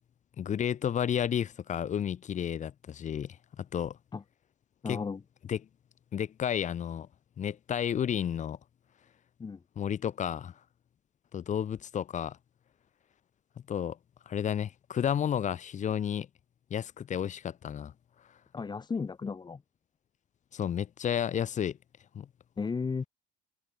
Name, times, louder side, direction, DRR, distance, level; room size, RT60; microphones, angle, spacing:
voice 1, 0.4-4.0 4.9-5.0 5.5-5.6 6.1-7.1 7.4-8.6 9.8-10.5 11.3-12.4 13.7-14.0 14.3-16.3 16.7-17.9 20.5-21.8 22.1-22.3, left 9 dB, 45° left, 5.7 m, -31 dB
voice 2, 4.8-5.2 9.4-9.6 18.5-19.6 22.6-23.0, left 5 dB, 25° left, 2.0 m, -34 dB
supercardioid pair, 95°, 17 cm